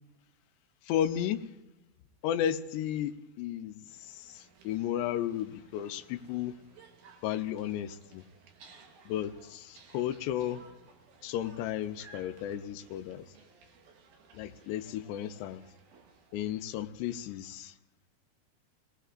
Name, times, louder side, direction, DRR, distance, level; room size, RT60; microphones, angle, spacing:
voice 1, 0.8-1.5 2.2-6.5 7.2-8.2 9.1-10.6 11.2-13.3 14.3-15.6 16.3-17.8, left 11 dB, 90° left, 2.9 m, -34 dB
sound 1, 3.9-16.3, right 4 dB, 65° right, 2.2 m, -58 dB
23.5 x 18.5 x 2.5 m
omnidirectional pair, 4.8 m